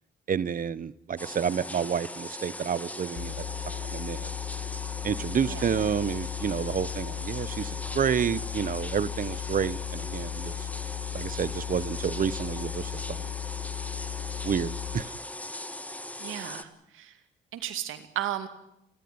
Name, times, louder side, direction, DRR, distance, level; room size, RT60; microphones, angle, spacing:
voice 1, 0.3-4.3 5.0-10.7 11.1-13.3 14.4-15.1, right 7 dB, 45° right, 19 dB, 1.0 m, -30 dB
sound 1, 1.2-16.6, left 1 dB, 5° left, 1.5 m, -39 dB
sound 2, 3.2-15.0, left 12 dB, 60° left, 0.8 m, -36 dB
voice 2, 16.2-17.1 17.5-18.5, right 12 dB, 85° right, 9 dB, 2.4 m, -34 dB
29.5 x 13.5 x 9.6 m, 0.81 s
cardioid pair, 90°, 20 cm